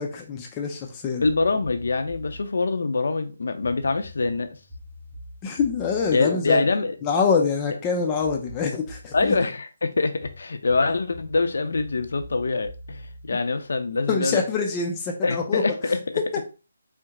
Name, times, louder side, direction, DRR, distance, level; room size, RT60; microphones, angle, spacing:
voice 1, 0.0-1.2 5.4-6.6 7.0-9.3 14.1-15.7, left 5 dB, 15° left, 0.5 m, -25 dB
voice 2, 1.2-4.5 6.1-7.0 8.3-8.4 9.1-14.4 15.2-16.2, left 3 dB, 70° left, 0.7 m, -24 dB
sound 1, 1.2-2.5 3.6-7.3 8.2-9.5 10.2-14.1, equal, 40° right, 2.0 m, -44 dB
4.5 x 2.1 x 3.6 m
hypercardioid pair, 165°, 0 cm